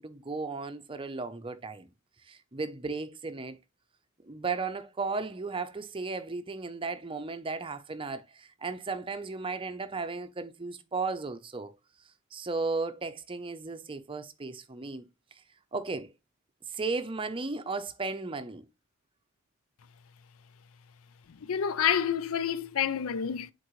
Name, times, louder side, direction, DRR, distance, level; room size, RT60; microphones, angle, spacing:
voice 1, 0.0-1.9 2.3-3.6 4.2-11.7 12.3-15.1 15.7-16.1 16.7-18.6, right 3 dB, 25° right, 0.6 m, -35 dB
voice 2, 21.3-23.5, left 8 dB, 80° left, 0.5 m, -28 dB
7.7 x 4.5 x 3.0 m
head